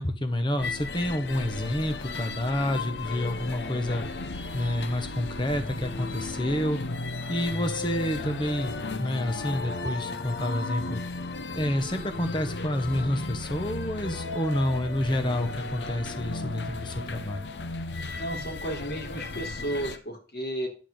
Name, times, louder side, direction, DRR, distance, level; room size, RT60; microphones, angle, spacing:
voice 1, 0.0-4.1 4.5-6.8 7.3-11.0 11.5-17.5, left 1 dB, 25° left, 7 dB, 1.3 m, -29 dB
sound 1, 0.6-20.0, left 3 dB, 80° left, 0.8 m, -35 dB
voice 2, 17.9-20.7, right 1 dB, 60° left, 1 dB, 3.6 m, -33 dB
10.5 x 4.8 x 7.8 m, 0.36 s
head